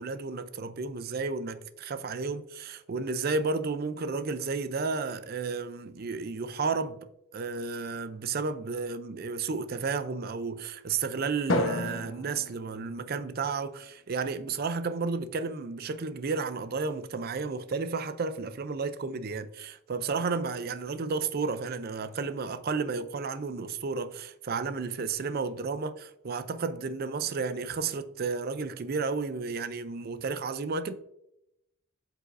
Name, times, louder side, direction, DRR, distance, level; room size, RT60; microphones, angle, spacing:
voice 1, 0.0-7.0 7.3-30.9, right 4 dB, 45° right, 0.4 m, -32 dB
Drum, 11.5-13.8, left 1 dB, 60° left, 1.0 m, -32 dB
7.9 x 5.4 x 2.6 m
head